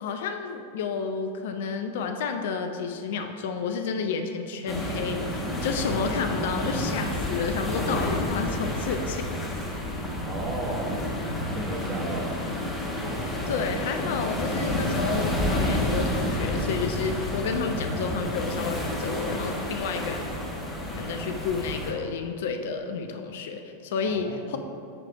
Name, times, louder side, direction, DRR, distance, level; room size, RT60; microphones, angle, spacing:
voice 1, 0.0-9.3 13.5-20.2 21.0-24.6, left 5 dB, 55° left, 6 dB, 0.4 m, -31 dB
sound 1, 4.7-21.9, left 1 dB, 15° left, 1.1 m, -30 dB
voice 2, 10.2-11.1 11.4-12.3 24.1-24.6, right 2 dB, 25° right, -3 dB, 1.3 m, -34 dB
8.6 x 3.2 x 4.6 m, 2.5 s
figure-of-eight pair, 90°, 0 cm